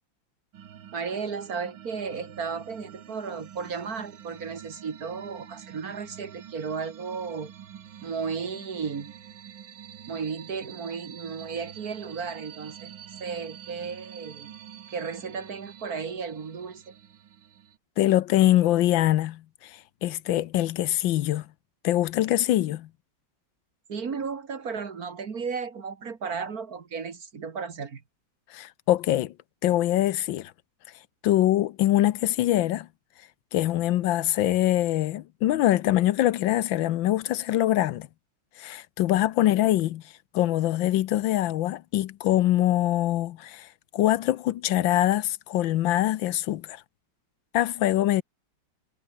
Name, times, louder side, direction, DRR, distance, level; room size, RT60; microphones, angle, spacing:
sound 1, 0.5-17.8, right 9 dB, 75° right, 2.1 m, -46 dB
voice 1, 0.9-7.5 8.0-9.1 10.1-12.9 13.2-14.5 14.9-17.0 23.9-28.0, right 5 dB, 50° right, 2.2 m, -34 dB
voice 2, 18.0-21.5 21.8-22.9 28.5-29.3 29.6-30.5 31.2-32.9 33.5-38.1 38.6-40.0 40.3-46.8 47.5-48.2, left 14 dB, 75° left, 1.4 m, -24 dB
omnidirectional pair, 2.1 m